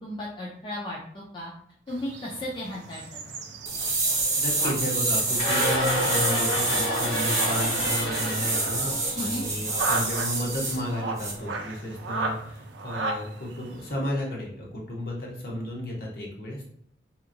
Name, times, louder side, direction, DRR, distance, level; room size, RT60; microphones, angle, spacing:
voice 1, 0.0-1.5 1.9-3.2 9.1-9.4, left 1 dB, 25° left, -4 dB, 0.4 m, -35 dB
sound 1, 1.9-13.9, right 3 dB, 85° right, 0.4 m, -36 dB
sound 2, 3.7-10.8 11.2-11.3, right 3 dB, 20° right, 0.6 m, -27 dB
voice 2, 4.4-16.7, left 1 dB, 55° left, -2 dB, 0.8 m, -33 dB
sound 3, 5.3-9.5, equal, 80° left, 1.4 m, -29 dB
2.8 x 2.5 x 2.5 m, 0.68 s
head